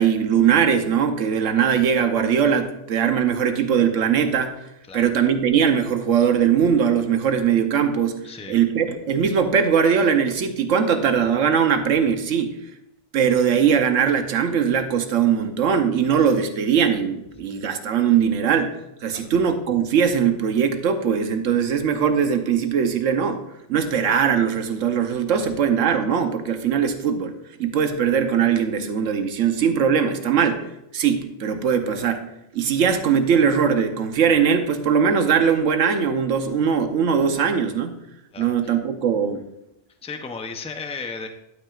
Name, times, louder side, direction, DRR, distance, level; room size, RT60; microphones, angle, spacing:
voice 1, 0.0-4.6 4.9-8.2 8.5-12.6 13.1-18.7 19.0-23.4 23.7-27.3 27.6-30.6 30.9-32.2 32.5-37.9 38.4-39.4, right 7 dB, 90° right, 7 dB, 1.2 m, -20 dB
voice 2, 8.2-8.6 19.1-19.2 38.3-38.7 40.0-41.3, left 4 dB, 10° left, 5 dB, 0.4 m, -34 dB
11.5 x 8.8 x 2.4 m, 0.86 s
omnidirectional pair, 1.3 m